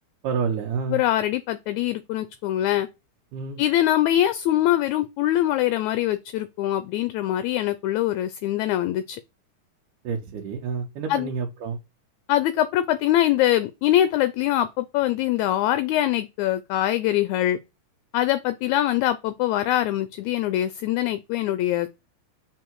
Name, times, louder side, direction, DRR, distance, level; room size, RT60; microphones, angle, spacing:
voice 1, 0.2-1.0 3.3-3.6 10.0-11.8, right 6 dB, 80° right, 2.5 m, -29 dB
voice 2, 0.9-2.9 3.6-9.2 11.1-11.3 12.3-17.6 18.1-21.9, left 13 dB, 80° left, 1.7 m, -23 dB
6.9 x 4.7 x 4.6 m
omnidirectional pair, 3.7 m